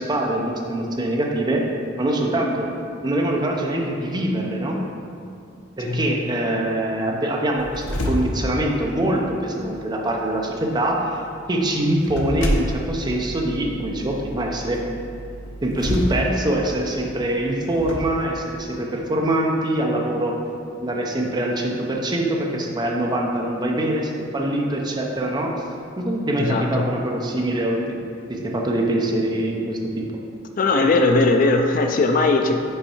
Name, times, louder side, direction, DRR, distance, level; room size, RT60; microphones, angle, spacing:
voice 1, 0.0-1.6 2.0-2.7 3.0-4.8 5.8-11.2 11.5-14.8 15.6-20.3 20.8-25.5 26.0-28.0 28.3-30.1, right 1 dB, 20° right, 0 dB, 0.6 m, -24 dB
sound 1, 7.6-18.0, equal, 75° left, 0.8 m, -31 dB
voice 2, 26.4-26.9 30.6-32.6, left 3 dB, 45° left, 5 dB, 0.4 m, -19 dB
5.5 x 4.5 x 4.3 m, 2.5 s
head